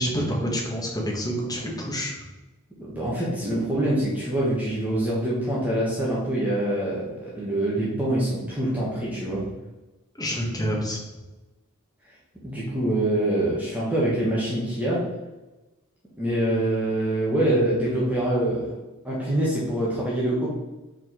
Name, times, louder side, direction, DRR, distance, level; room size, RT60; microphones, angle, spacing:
voice 1, 0.0-2.2 10.2-11.0, equal, 20° left, -2 dB, 1.5 m, -27 dB
voice 2, 2.8-9.4 12.4-15.0 16.2-18.7 19.0-20.5, right 1 dB, 5° right, -6 dB, 1.2 m, -25 dB
4.9 x 4.4 x 4.4 m, 1.1 s
head